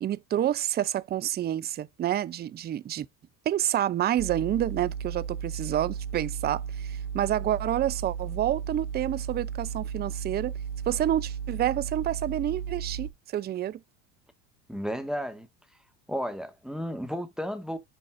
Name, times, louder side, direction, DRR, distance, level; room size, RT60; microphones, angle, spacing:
voice 1, 0.0-3.1 3.5-10.5 10.9-13.8, right 11 dB, 25° right, 0.4 m, -28 dB
sound 1, 4.2-13.1, right 7 dB, 80° right, 2.2 m, -35 dB
voice 2, 14.7-15.5 16.1-17.8, equal, ahead, 1.6 m, -33 dB
7.7 x 5.3 x 2.5 m
hypercardioid pair, 85°, 45 cm